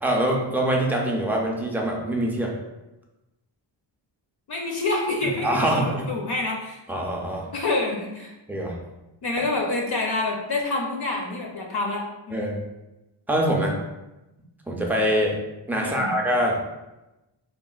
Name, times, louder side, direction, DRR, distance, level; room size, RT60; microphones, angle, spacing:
voice 1, 0.0-2.5 5.4-6.1 6.9-7.5 8.5-8.8 12.3-12.6 13.3-13.8 14.7-15.4 15.7-16.6, right 1 dB, 5° right, -1 dB, 0.4 m, -24 dB
voice 2, 4.5-6.8 7.5-8.3 9.2-12.6 15.8-16.1, left 2 dB, 55° left, 0 dB, 0.5 m, -27 dB
3.6 x 2.4 x 2.3 m, 1.0 s
wide cardioid pair, 100°, 48 cm